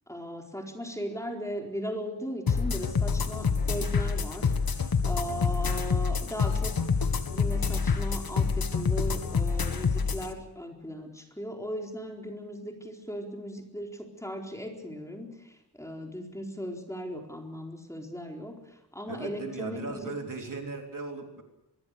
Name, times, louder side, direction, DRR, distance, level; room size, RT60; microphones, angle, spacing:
voice 1, 0.1-6.7 7.3-18.6 18.9-20.1, equal, 5° left, 1 dB, 4.3 m, -37 dB
sound 1, 2.5-10.3, left 5 dB, 60° left, 1.9 m, -27 dB
voice 2, 19.1-21.4, right 3 dB, 50° right, 3 dB, 3.5 m, -37 dB
24.5 x 22.0 x 6.7 m, 0.89 s
wide cardioid pair, 120°, 41 cm